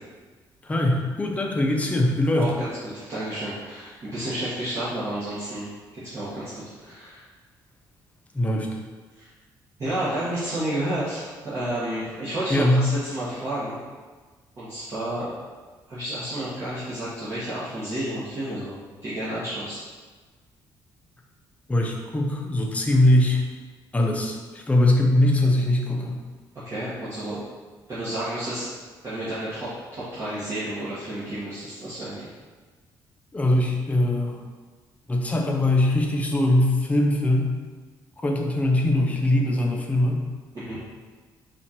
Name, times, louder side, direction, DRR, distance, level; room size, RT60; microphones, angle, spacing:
voice 1, 0.6-2.5 8.3-8.8 12.5-12.9 21.7-23.4 23.9-26.2 33.3-34.4 35.1-37.5 38.2-40.2, left 1 dB, 15° left, 1 dB, 0.6 m, -21 dB
voice 2, 2.3-2.7 2.9-7.2 9.1-9.3 9.8-13.8 14.6-15.4 15.9-19.8 26.6-27.4 27.9-28.7 29.0-32.3 40.5-40.8, right 1 dB, 40° right, -12 dB, 1.3 m, -31 dB
4.2 x 2.5 x 4.3 m, 1.4 s
cardioid pair, 115°, 8 cm